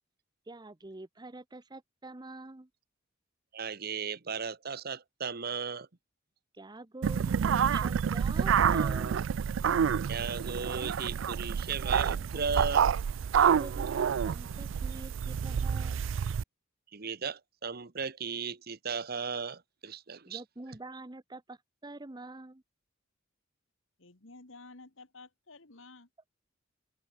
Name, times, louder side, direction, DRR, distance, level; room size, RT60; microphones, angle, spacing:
voice 1, 0.5-2.7 6.5-9.2 13.5-16.0 20.3-22.6, right 2 dB, 20° right, 0.8 m, -46 dB
voice 2, 3.5-5.9 10.1-13.0 16.9-20.4, right 5 dB, 50° right, 1.1 m, -36 dB
sound 1, 7.0-16.4, right 7 dB, 65° right, 0.4 m, -28 dB
voice 3, 24.0-26.1, left 3 dB, 70° left, 2.2 m, -52 dB
head